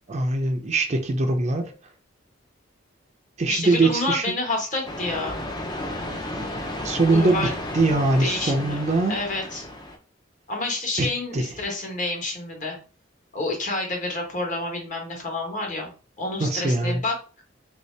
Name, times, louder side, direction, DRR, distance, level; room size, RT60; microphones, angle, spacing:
voice 1, 0.1-1.7 3.4-4.2 6.8-7.5 7.7-9.2 11.0-11.1 11.3-11.5 16.4-17.0, right 2 dB, 35° right, 5 dB, 0.5 m, -22 dB
voice 2, 3.5-5.4 7.1-7.5 8.2-8.8 9.1-9.7 10.5-12.8 13.3-15.9 16.2-17.2, left 2 dB, 40° left, 0 dB, 1.2 m, -28 dB
sound 1, 4.8-10.0, left 1 dB, 20° left, 0.5 m, -33 dB
3.2 x 2.7 x 3.2 m, 0.37 s
head